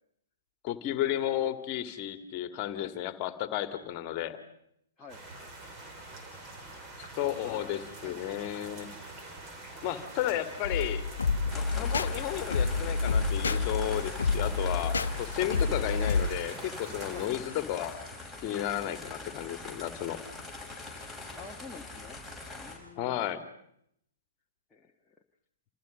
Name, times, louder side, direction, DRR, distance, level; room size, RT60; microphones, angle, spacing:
voice 1, 0.6-4.4 7.2-8.9 9.8-11.0 11.5-18.0 18.4-20.2 23.0-23.4, left 12 dB, 30° left, 8 dB, 2.4 m, -33 dB
sound 1, 5.1-17.3, right 2 dB, 20° right, 5.1 m, -45 dB
voice 2, 7.1-8.2 11.7-11.9 17.1-17.3 18.8-19.0 21.3-22.2 22.5-23.3 24.7-25.2, left 5 dB, 10° left, -1 dB, 1.5 m, -49 dB
sound 2, 10.6-16.3, left 4 dB, 65° left, 1.1 m, -29 dB
sound 3, 11.5-22.8, left 2 dB, 5° right, 6.9 m, -43 dB
29.5 x 28.0 x 5.4 m, 0.74 s
figure-of-eight pair, 115°, 0 cm